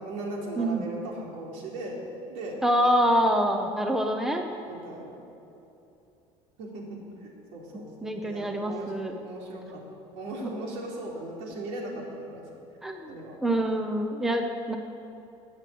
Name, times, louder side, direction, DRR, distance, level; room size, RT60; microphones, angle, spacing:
voice 1, 0.0-2.0 2.3-2.6 4.7-5.2 6.6-9.0 9.2-9.8 10.2-12.4 13.1-13.4, right 1 dB, 80° right, -2 dB, 3.8 m, -38 dB
voice 2, 2.6-4.4 8.0-9.1 10.4-10.5 12.8-13.1 13.4-14.8, equal, 5° right, 4 dB, 0.8 m, -25 dB
19.5 x 7.8 x 8.6 m, 2.9 s
cardioid pair, 175°, 12 cm